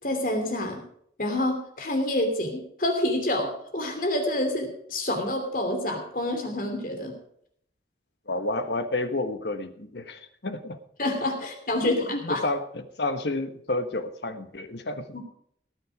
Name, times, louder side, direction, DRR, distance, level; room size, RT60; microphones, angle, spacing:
voice 1, 0.0-0.8 1.2-7.1 11.0-12.4 15.1-15.2, left 1 dB, 50° left, 4 dB, 2.8 m, -27 dB
voice 2, 8.3-10.8 11.8-15.1, left 2 dB, 75° left, 9 dB, 1.3 m, -30 dB
19.0 x 7.9 x 4.8 m, 0.67 s
head